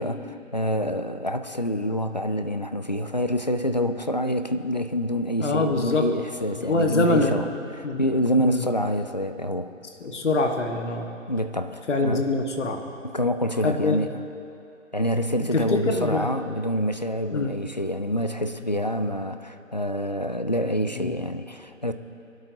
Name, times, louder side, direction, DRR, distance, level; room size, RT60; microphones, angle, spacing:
voice 1, 0.0-7.5 7.7-9.7 11.3-12.3 13.0-14.2 14.9-21.9, equal, 35° left, 9 dB, 0.4 m, -27 dB
voice 2, 5.4-6.1 6.6-7.4 7.8-8.0 8.4-8.6 10.0-11.1 11.9-12.8 13.6-14.0 15.5-16.3 17.3-17.5 21.0-21.1, left 2 dB, 60° left, 3 dB, 1.5 m, -24 dB
23.0 x 11.5 x 2.8 m, 2.7 s
figure-of-eight pair, 145°, 40 cm